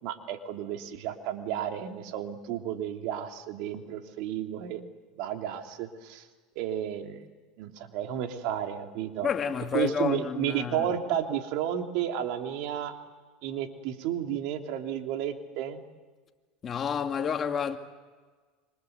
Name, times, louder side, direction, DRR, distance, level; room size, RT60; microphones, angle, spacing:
voice 1, 0.0-4.8 5.2-6.2 6.5-7.3 7.6-9.3 9.7-12.9 13.4-15.8, right 10 dB, 65° right, 3.0 m, -32 dB
voice 2, 9.2-10.9 16.6-17.8, left 7 dB, 30° left, 2.1 m, -30 dB
26.5 x 26.0 x 8.1 m
supercardioid pair, 110°, 0 cm